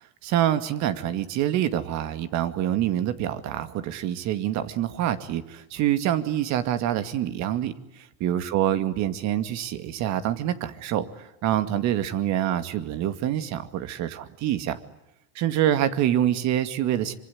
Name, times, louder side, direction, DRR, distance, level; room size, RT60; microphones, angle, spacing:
voice 1, 0.2-14.8 15.4-17.1, right 11 dB, 60° right, 11 dB, 2.3 m, -26 dB
25.0 x 24.0 x 9.9 m, 0.89 s
supercardioid pair, 100°, 31 cm